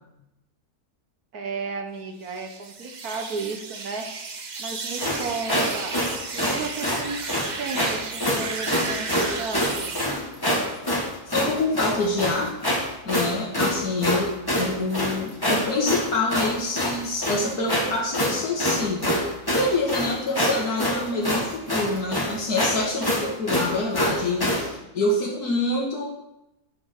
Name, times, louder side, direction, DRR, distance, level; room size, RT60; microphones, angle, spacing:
voice 1, 1.3-4.1 4.6-7.2 7.6-9.9, right 4 dB, 70° right, 5 dB, 1.8 m, -34 dB
sound 1, 2.2-10.1, right 4 dB, 35° right, 0.8 m, -34 dB
sound 2, 5.0-24.7, equal, 15° left, 1.8 m, -26 dB
voice 2, 11.3-12.5 13.0-14.3 14.6-19.2 19.5-26.0, left 2 dB, 75° left, -4 dB, 2.1 m, -26 dB
9.8 x 7.1 x 6.6 m, 0.89 s
omnidirectional pair, 1.6 m